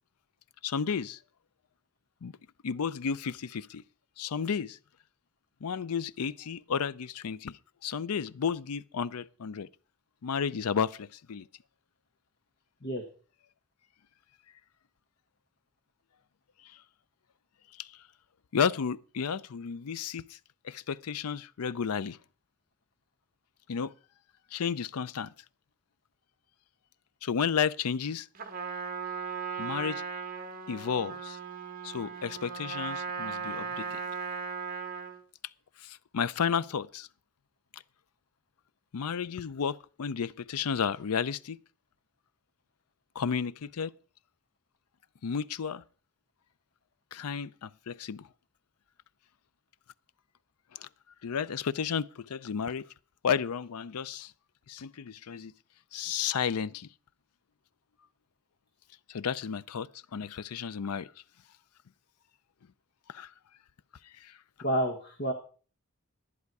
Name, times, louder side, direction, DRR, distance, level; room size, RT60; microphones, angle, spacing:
voice 1, 0.6-1.2 2.2-2.3 2.6-3.8 4.2-4.8 5.6-7.6 7.8-9.7 10.2-11.4 17.8-17.9 18.5-20.4 20.6-22.2 23.7-23.9 24.5-25.3 27.2-28.3 29.6-30.0 30.7-31.4 31.8-34.0 35.8-37.1 38.9-41.6 43.2-43.9 45.2-45.8 47.1-48.3 50.7-50.9 51.2-52.8 53.2-54.3 54.7-55.5 55.9-56.9 59.1-61.1 63.1-63.3 64.2-64.3, left 6 dB, 90° left, 0.5 m, -32 dB
Trumpet, 28.3-35.2, right 5 dB, 40° right, 1.3 m, -37 dB
voice 2, 64.6-65.3, equal, 45° left, 1.4 m, -29 dB
11.0 x 10.5 x 4.7 m
head